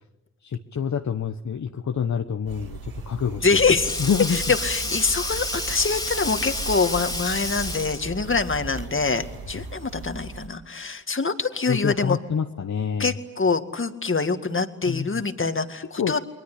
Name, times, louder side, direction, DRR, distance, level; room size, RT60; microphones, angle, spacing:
voice 1, 0.4-3.5 4.0-4.4 11.7-13.1 14.9-15.2 16.0-16.1, left 7 dB, 55° left, 5 dB, 1.2 m, -27 dB
sound 1, 2.5-10.5, right 4 dB, 90° right, 2.2 m, -37 dB
Sink (filling or washing), 3.1-8.2, left 2 dB, 10° left, 2.9 m, -30 dB
voice 2, 3.4-3.9 4.3-12.2 13.0-16.2, left 4 dB, 35° left, 8 dB, 2.1 m, -24 dB
29.5 x 21.5 x 8.5 m, 1.1 s
supercardioid pair, 45°, 34 cm